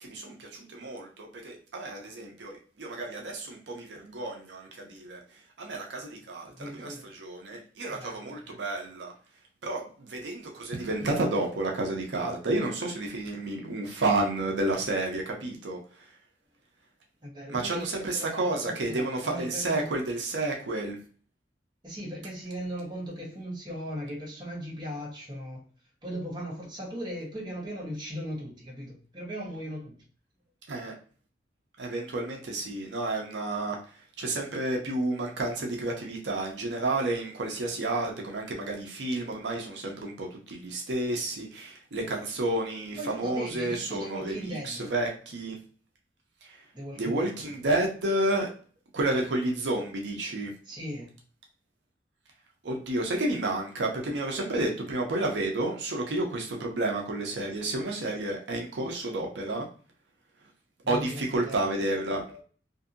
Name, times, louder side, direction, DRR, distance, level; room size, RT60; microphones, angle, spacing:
voice 1, 0.0-9.1 9.6-16.2 17.5-21.0 30.7-31.0 31.8-45.6 46.4-46.7 46.9-48.5 48.9-50.5 52.6-59.7 60.9-62.4, right 2 dB, 85° right, 1 dB, 0.6 m, -31 dB
voice 2, 6.5-7.1 7.5-7.6 8.0-8.2 8.5-8.6 17.2-17.8 18.1-19.9 21.8-25.6 26.0-30.0 43.0-44.9 46.7-47.3 50.7-51.1 60.8-61.6, equal, 25° right, -3 dB, 1.0 m, -38 dB
2.6 x 2.6 x 2.5 m, 0.41 s
head